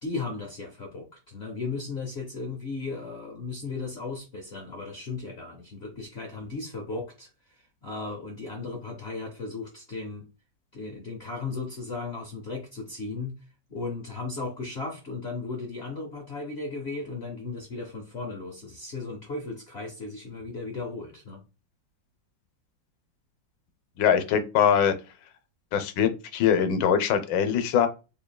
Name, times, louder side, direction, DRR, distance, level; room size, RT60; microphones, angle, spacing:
voice 1, 0.0-10.3 10.7-13.4 13.7-21.4, left 3 dB, 60° left, 2 dB, 0.7 m, -36 dB
voice 2, 24.0-24.9 25.7-27.9, left 8 dB, 80° left, 9 dB, 1.3 m, -22 dB
3.7 x 3.3 x 2.2 m, 0.29 s
omnidirectional pair, 2.0 m